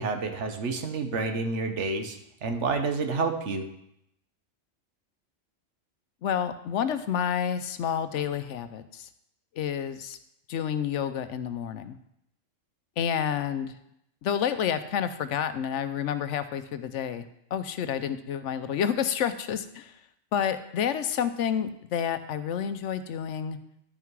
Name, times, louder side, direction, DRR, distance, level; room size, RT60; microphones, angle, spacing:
voice 1, 0.0-3.7, right 4 dB, 65° right, 6 dB, 1.2 m, -29 dB
voice 2, 6.2-9.1 9.6-10.2 10.5-12.0 13.0-13.7 14.2-17.2 17.5-19.9 20.3-23.6, left 8 dB, 70° left, 11 dB, 0.9 m, -29 dB
11.0 x 5.8 x 4.6 m, 0.78 s
omnidirectional pair, 1.3 m